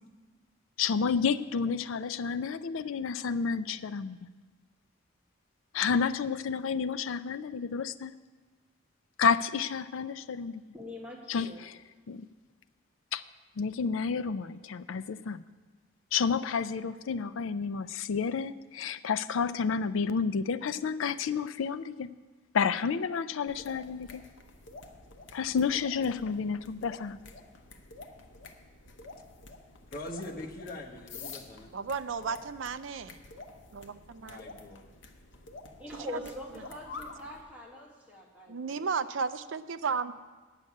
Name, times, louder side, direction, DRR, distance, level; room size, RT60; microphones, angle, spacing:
voice 1, 0.8-4.3 5.7-8.1 9.2-10.6 11.3-11.7 12.1-12.3 13.1-13.2 13.6-15.5 16.1-22.1 22.5-24.2 25.3-27.2, left 6 dB, 90° left, 14 dB, 0.4 m, -30 dB
voice 2, 10.7-11.6 35.8-38.9, left 1 dB, 5° right, -2 dB, 1.6 m, -43 dB
sound 1, 23.5-37.4, left 3 dB, 65° left, 0.9 m, -49 dB
voice 3, 29.9-31.7 34.2-34.9, left 1 dB, 45° left, -1 dB, 1.3 m, -42 dB
voice 4, 31.7-33.2 34.2-34.4 38.5-40.1, right 5 dB, 75° right, 12 dB, 0.5 m, -33 dB
9.3 x 6.6 x 8.6 m, 1.3 s
head